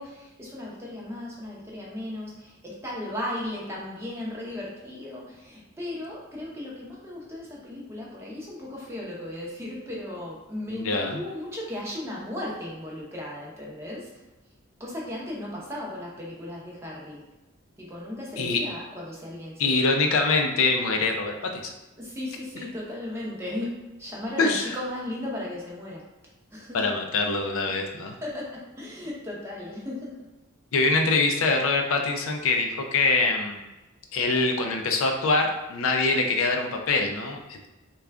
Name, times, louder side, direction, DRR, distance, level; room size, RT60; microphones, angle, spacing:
voice 1, 0.0-14.1 14.8-17.2 17.9-19.5 22.0-26.0 26.5-26.8 28.2-30.1, left 1 dB, 10° right, -4 dB, 0.7 m, -36 dB
voice 2, 10.7-11.2 18.4-18.6 19.6-21.6 24.4-24.8 26.7-28.2 30.7-33.6 34.1-37.7, left 3 dB, 70° left, 3 dB, 0.4 m, -24 dB
3.6 x 2.3 x 3.4 m, 1.1 s
head